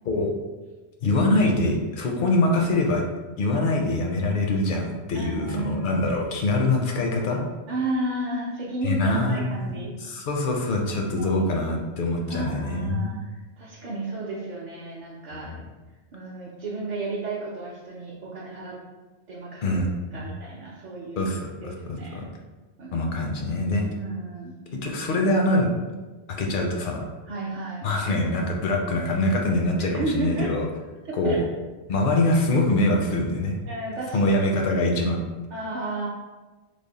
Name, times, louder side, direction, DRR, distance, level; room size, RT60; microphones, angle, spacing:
voice 1, 1.0-3.0 3.4-7.4 8.8-9.7 10.0-13.2 15.4-15.5 19.6-20.2 21.2-22.3 22.9-23.8 24.7-25.7 26.4-27.0 27.8-30.7 31.1-31.5 31.9-33.6 34.1-35.2, left 2 dB, 60° left, 1 dB, 0.6 m, -24 dB
voice 2, 5.1-5.8 6.3-6.6 7.7-9.9 11.2-11.4 12.3-15.6 16.1-18.8 19.3-19.8 20.1-21.2 21.6-22.2 22.8-23.4 24.0-24.6 27.3-27.9 29.8-30.5 31.0-31.4 33.7-34.4 35.5-36.1, right 2 dB, 55° right, -7 dB, 0.6 m, -33 dB
3.3 x 2.0 x 3.8 m, 1.2 s
omnidirectional pair, 1.1 m